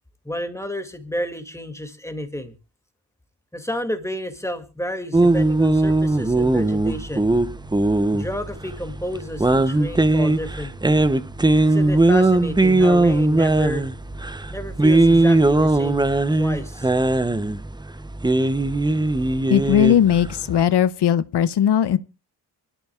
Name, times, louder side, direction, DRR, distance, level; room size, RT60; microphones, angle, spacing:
voice 1, 0.2-2.5 3.5-7.3 8.1-11.0 11.6-13.9 14.5-16.0 16.4-16.9, equal, 5° left, 2.3 m, -31 dB
sound 1, 5.1-20.6, right 2 dB, 10° right, 0.7 m, -19 dB
sound 2, 5.6-15.9, right 3 dB, 75° right, 3.2 m, -46 dB
voice 2, 19.5-22.0, left 9 dB, 75° left, 0.7 m, -18 dB
24.5 x 13.0 x 2.4 m
cardioid pair, 80°, 41 cm